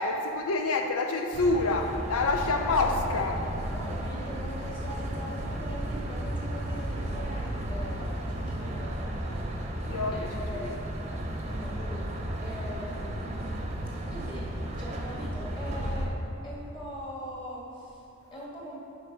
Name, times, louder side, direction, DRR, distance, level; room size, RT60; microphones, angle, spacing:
voice 1, 0.0-3.4 9.9-10.8, left 3 dB, 90° left, 4 dB, 0.5 m, -27 dB
sound 1, 1.3-16.1, right 1 dB, 30° right, 0.7 m, -34 dB
voice 2, 2.4-3.2 3.7-9.6 10.1-11.0 11.5-12.0 12.4-13.3 13.9-14.5 14.8-16.2 16.4-18.8, equal, 25° left, -5 dB, 1.7 m, -41 dB
8.1 x 5.3 x 5.4 m, 2.8 s
head